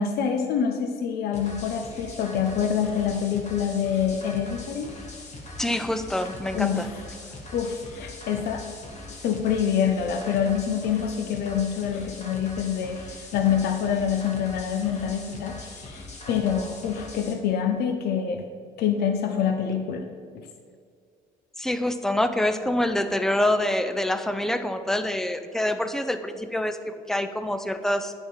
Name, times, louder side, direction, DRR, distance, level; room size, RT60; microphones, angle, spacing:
voice 1, 0.0-4.9 6.5-6.9 7.5-8.7 9.2-18.5 18.8-20.1 20.3-20.5, left 7 dB, 70° left, 5 dB, 0.6 m, -26 dB
sound 1, 1.3-17.3, left 2 dB, 45° left, 1.6 m, -41 dB
voice 2, 5.6-6.9 21.6-28.1, left 1 dB, 5° left, 9 dB, 0.5 m, -26 dB
9.6 x 3.6 x 5.6 m, 2.1 s
cardioid pair, 110°, 17 cm